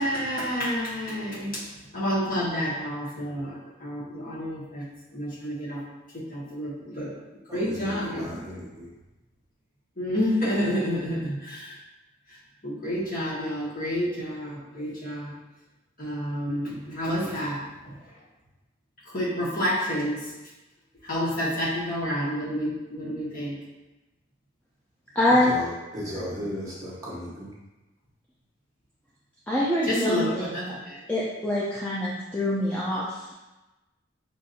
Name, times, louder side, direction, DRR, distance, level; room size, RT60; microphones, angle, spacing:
voice 1, 0.0-1.6 1.9-4.8 5.1-5.8 6.1-7.1 7.5-8.4 10.0-11.8 12.6-15.3 16.0-17.6 17.8-17.9 19.0-20.3 21.0-23.6 29.9-31.0, equal, 45° left, -7 dB, 1.3 m, -29 dB
voice 2, 7.5-8.9 25.3-27.6, equal, 15° right, -6 dB, 0.8 m, -36 dB
voice 3, 25.2-25.5 29.5-30.7 31.1-33.3, left 1 dB, 10° left, -7 dB, 0.4 m, -25 dB
5.6 x 2.6 x 2.7 m, 1.1 s
head